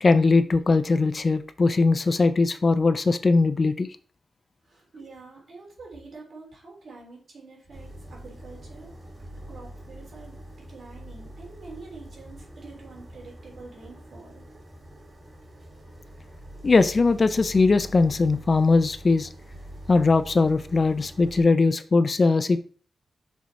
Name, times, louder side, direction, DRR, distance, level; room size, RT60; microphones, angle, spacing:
voice 1, 0.0-3.9 16.6-19.3 19.9-22.6, left 3 dB, 30° left, 11 dB, 0.3 m, -20 dB
voice 2, 4.6-8.9 9.5-10.4 10.7-14.4, right 3 dB, 55° right, -2 dB, 3.3 m, -46 dB
sound 1, 7.7-21.4, right 1 dB, 25° right, 1.8 m, -44 dB
6.1 x 4.6 x 4.1 m, 0.42 s
wide cardioid pair, 175°, 0 cm